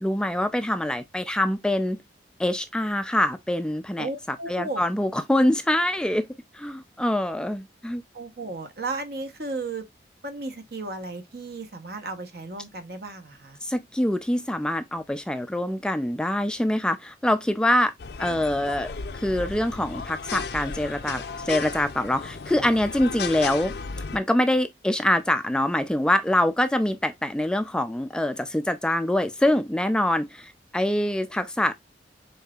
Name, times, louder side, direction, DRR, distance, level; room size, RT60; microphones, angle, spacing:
voice 1, 0.0-2.0 2.4-6.3 6.5-8.0 13.6-17.9 18.2-23.7 24.1-31.7, left 1 dB, 5° left, 0.3 m, -25 dB
voice 2, 4.0-4.8 8.1-9.9 10.2-13.6, right 3 dB, 60° right, 0.9 m, -34 dB
sound 1, 18.0-24.2, left 5 dB, 65° left, 0.5 m, -34 dB
5.5 x 3.8 x 2.3 m
head